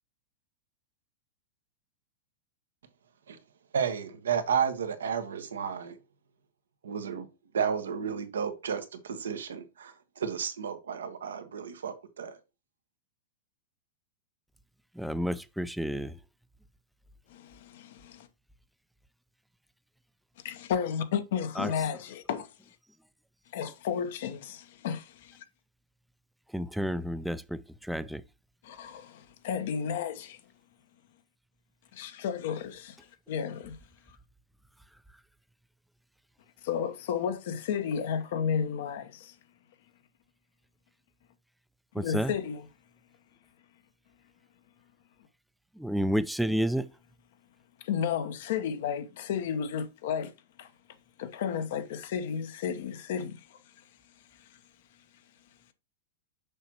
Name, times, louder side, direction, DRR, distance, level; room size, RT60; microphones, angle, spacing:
voice 1, 3.7-5.9 6.8-7.3 7.5-12.4, right 7 dB, 85° right, 1.1 m, -32 dB
voice 2, 14.9-16.2 21.6-21.7 26.5-28.2 41.9-42.3 45.8-46.9, equal, ahead, 0.5 m, -30 dB
voice 3, 17.3-18.3 20.4-22.5 23.5-25.4 28.6-30.4 31.9-33.0 33.3-33.8 36.6-39.3 42.0-42.6 47.8-50.3 50.6-50.7 51.2-53.4, left 7 dB, 65° left, 1.0 m, -32 dB
6.7 x 5.7 x 2.9 m
hypercardioid pair, 115°, 0 cm